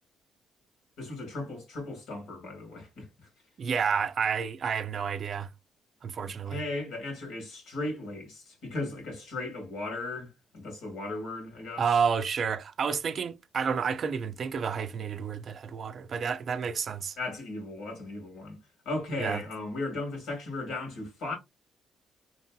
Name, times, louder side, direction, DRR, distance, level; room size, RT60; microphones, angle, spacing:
voice 1, 1.0-3.1 6.5-11.8 17.2-18.6 18.9-21.4, left 2 dB, 80° left, 1.6 m, -36 dB
voice 2, 3.6-5.5 6.0-6.6 11.8-17.2 19.2-19.4, right 6 dB, 55° right, 0.3 m, -30 dB
2.9 x 2.6 x 2.3 m
cardioid pair, 90°, 0 cm